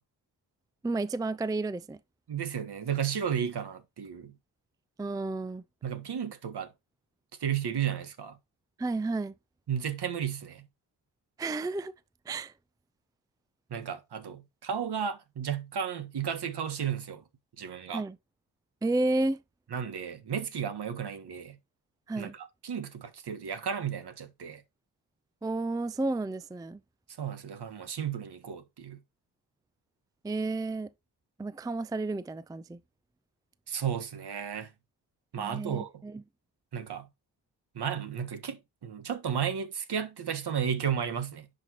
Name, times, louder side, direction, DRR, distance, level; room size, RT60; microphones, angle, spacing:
voice 1, 0.8-2.0 5.0-5.6 8.8-9.3 11.4-11.9 12.3-12.5 17.9-18.2 18.8-19.4 22.1-22.3 25.4-26.8 30.2-30.9 31.4-32.8 35.4-36.2, right 2 dB, 10° right, 0.5 m, -31 dB
voice 2, 2.3-4.3 5.8-6.7 7.4-8.4 9.7-10.7 13.7-17.2 17.6-18.0 19.7-21.6 22.2-24.6 27.2-29.0 33.7-34.7 35.3-36.0 36.7-37.1 37.7-41.5, right 8 dB, 60° right, 1.5 m, -33 dB
10.5 x 5.3 x 3.0 m
supercardioid pair, 50°, 46 cm